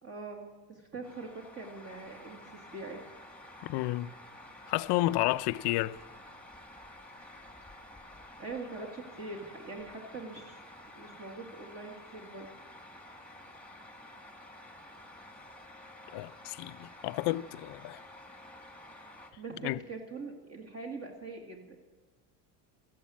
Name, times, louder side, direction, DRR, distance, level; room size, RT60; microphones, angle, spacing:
voice 1, 0.0-3.0 8.4-10.6 10.9-12.5 19.4-21.8, right 3 dB, 30° right, 2.2 m, -43 dB
sound 1, 1.0-19.3, left 1 dB, ahead, 1.8 m, -51 dB
voice 2, 3.6-4.1 4.7-6.0 16.1-18.0 19.6-19.8, left 17 dB, 60° left, 0.6 m, -31 dB
13.5 x 11.5 x 8.4 m
supercardioid pair, 105°, 47 cm